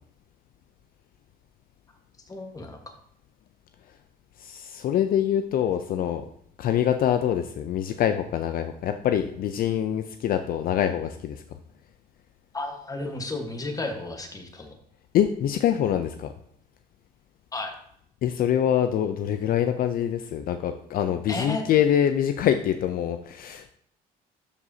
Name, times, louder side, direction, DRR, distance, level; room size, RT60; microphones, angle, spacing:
voice 1, 2.3-2.9 12.5-14.8 17.5-17.7 21.3-21.6, left 2 dB, 20° left, 4 dB, 1.3 m, -33 dB
voice 2, 4.4-6.3 6.6-11.4 15.1-16.3 18.2-23.7, left 10 dB, 60° left, 8 dB, 0.5 m, -25 dB
12.0 x 4.9 x 2.7 m, 0.68 s
cardioid pair, 110°, 17 cm